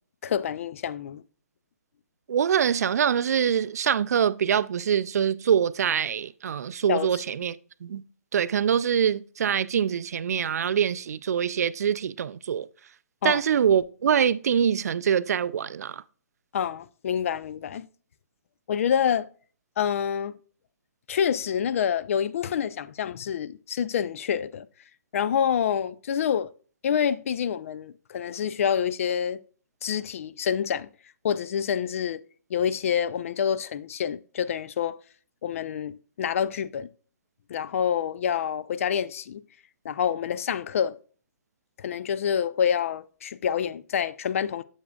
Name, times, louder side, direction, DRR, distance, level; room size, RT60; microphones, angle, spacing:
voice 1, 0.2-1.2 6.9-7.2 13.2-13.4 16.5-17.9 18.7-19.3 19.8-20.3 21.1-24.7 25.1-26.5 26.8-29.4 29.8-30.9 31.2-32.2 32.5-35.0 35.4-36.9 37.5-39.4 39.8-41.0 41.8-44.6, left 8 dB, 55° left, 0.4 m, -27 dB
voice 2, 2.3-7.6 7.8-8.0 8.3-12.7 13.2-16.0, right 8 dB, 70° right, 0.3 m, -24 dB
7.2 x 7.1 x 2.3 m
hypercardioid pair, 140°, 9 cm